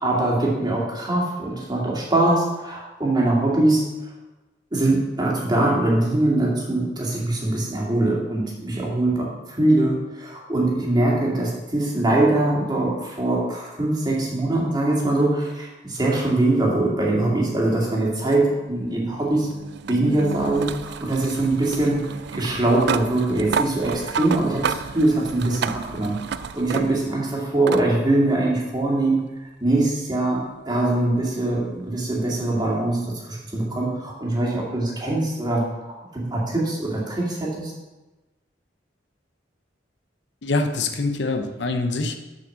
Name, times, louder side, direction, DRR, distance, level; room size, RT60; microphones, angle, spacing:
voice 1, 0.0-3.9 4.7-19.5 19.9-22.0 22.3-29.2 29.6-35.7 36.1-37.7, right 2 dB, 25° right, -3 dB, 2.2 m, -22 dB
sound 1, 18.3-27.2 27.7-27.9 29.2-29.3 32.2-32.3, right 6 dB, 65° right, 0.4 m, -31 dB
voice 2, 40.4-42.2, left 3 dB, 70° left, 6 dB, 0.8 m, -24 dB
6.5 x 6.1 x 6.3 m, 1.1 s
head